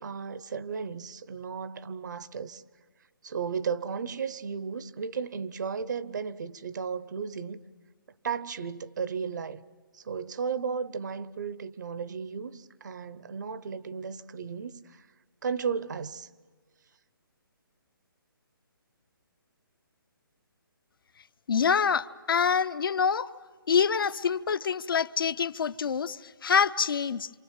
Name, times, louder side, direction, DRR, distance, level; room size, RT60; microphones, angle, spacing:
voice 1, 0.0-2.6 3.2-7.6 8.2-9.6 9.9-15.1 15.4-16.3, right 6 dB, 50° right, 0.8 m, -34 dB
voice 2, 21.5-23.3 23.7-27.3, left 6 dB, 70° left, 0.7 m, -26 dB
27.5 x 25.0 x 7.4 m
hypercardioid pair, 170°, 12 cm